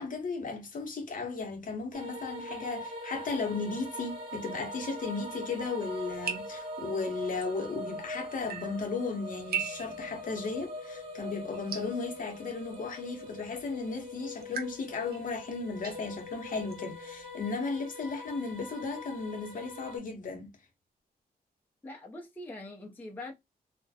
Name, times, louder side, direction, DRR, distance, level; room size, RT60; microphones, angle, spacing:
voice 1, 0.0-20.5, left 4 dB, 55° left, 0.8 m, -35 dB
sound 1, 1.9-20.0, left 1 dB, 35° right, 1.3 m, -42 dB
sound 2, 5.9-17.5, right 7 dB, 70° right, 0.6 m, -43 dB
voice 2, 21.8-23.3, left 2 dB, 10° left, 0.5 m, -43 dB
2.4 x 2.1 x 2.6 m
wide cardioid pair, 125°, 16 cm